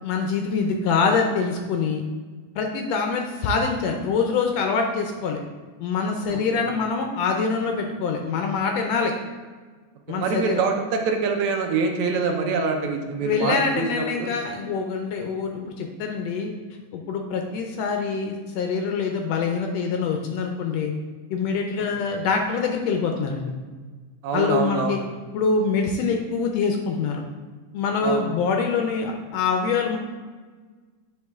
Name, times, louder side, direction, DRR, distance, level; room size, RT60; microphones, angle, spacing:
voice 1, 0.0-2.0 2.5-5.4 5.8-9.1 10.1-10.6 13.2-16.5 16.9-20.9 21.3-23.5 24.3-25.0 25.3-27.2 27.7-30.0, left 5 dB, 75° left, 2 dB, 1.6 m, -25 dB
voice 2, 6.3-6.6 10.1-14.3 24.2-25.0 28.0-28.2, right 5 dB, 75° right, 3 dB, 2.0 m, -25 dB
9.6 x 4.8 x 3.5 m, 1.4 s
omnidirectional pair, 3.4 m